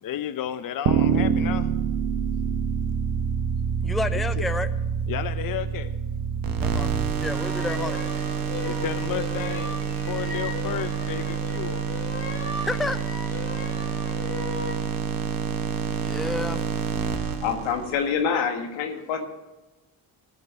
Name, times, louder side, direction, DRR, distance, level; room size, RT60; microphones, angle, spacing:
voice 1, 0.0-1.7 4.4-4.5 5.1-5.9 8.6-11.8 18.3-18.4, left 11 dB, 50° left, 10 dB, 0.7 m, -32 dB
sound 1, 0.9-7.1, right 7 dB, 70° right, 1.2 m, -26 dB
voice 2, 3.8-4.7 6.6-6.9 7.2-8.0 12.6-13.0 15.9-16.6, left 2 dB, ahead, 11 dB, 0.5 m, -30 dB
sound 2, 6.4-18.1, right 6 dB, 50° right, 1.3 m, -29 dB
sound 3, 7.3-14.8, left 3 dB, 30° left, 2.3 m, -37 dB
voice 3, 17.4-19.3, left 6 dB, 85° left, 5 dB, 1.8 m, -26 dB
15.5 x 5.4 x 8.7 m, 1.1 s
supercardioid pair, 70°, 45 cm